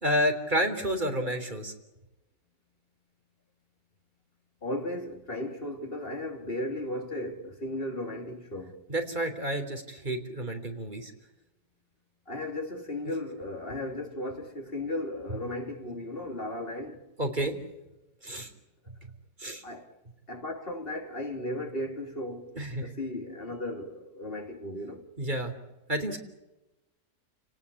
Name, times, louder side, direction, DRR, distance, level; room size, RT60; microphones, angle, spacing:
voice 1, 0.0-1.7 8.9-11.1 17.2-17.5 18.2-18.5 19.4-19.6 22.5-22.9 25.2-25.5 25.9-26.2, equal, 30° right, 3.8 m, -30 dB
voice 2, 4.6-8.8 12.3-17.0 19.6-20.0 20.3-22.5 22.8-25.0, left 1 dB, 35° left, 3.1 m, -35 dB
29.5 x 19.0 x 8.5 m
omnidirectional pair, 1.6 m